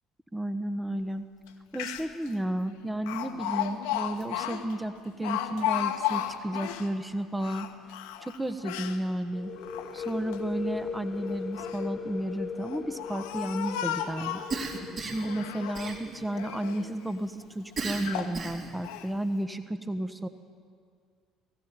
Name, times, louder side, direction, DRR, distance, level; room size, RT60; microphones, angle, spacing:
voice 1, 0.3-1.2 1.7-7.7 8.2-9.5 9.9-14.4 15.0-20.3, right 1 dB, 10° right, 10 dB, 1.3 m, -32 dB
Speech, 1.5-1.6 1.7-2.3 3.1-6.9 7.4-9.0 9.6-10.4 11.3-11.9 12.6-14.6 15.1-16.0 16.3-16.9 17.4-17.5 18.0-18.4 18.8-19.1, left 11 dB, 70° left, 1.4 m, -34 dB
sound 1, 9.3-16.9, left 6 dB, 35° left, 1.6 m, -39 dB
Cough, 14.5-15.3 15.7-16.4 17.8-18.8, right 4 dB, 45° right, 4.1 m, -34 dB
19.5 x 16.0 x 9.2 m, 2.1 s
figure-of-eight pair, 55°, 0 cm